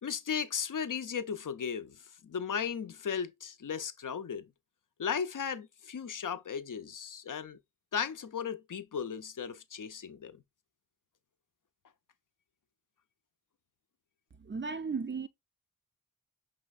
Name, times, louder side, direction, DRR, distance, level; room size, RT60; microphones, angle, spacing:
voice 1, 0.0-4.5 5.0-7.6 7.9-10.4, left 7 dB, 55° left, 0.6 m, -36 dB
voice 2, 14.4-15.3, right 5 dB, 35° right, 0.4 m, -35 dB
5.5 x 3.1 x 2.3 m
wide cardioid pair, 55°, 37 cm